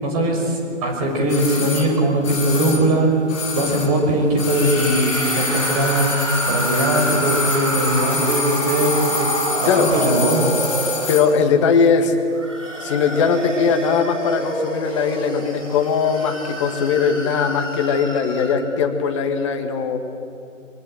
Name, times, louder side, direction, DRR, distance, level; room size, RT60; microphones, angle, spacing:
voice 1, 0.0-3.2 3.5-6.1 6.5-9.3 9.6-10.5, right 1 dB, 30° right, 1 dB, 5.7 m, -20 dB
sound 1, 1.3-4.0 4.3-11.3 11.6-11.7, left 3 dB, 5° left, 0.6 m, -27 dB
sound 2, 4.5-11.5 12.2-18.7, right 1 dB, 75° right, 5.6 m, -28 dB
voice 2, 11.1-12.2 12.8-20.0, left 6 dB, 25° left, 5 dB, 1.9 m, -19 dB
24.5 x 23.5 x 7.8 m, 2.5 s
figure-of-eight pair, 140°, 38 cm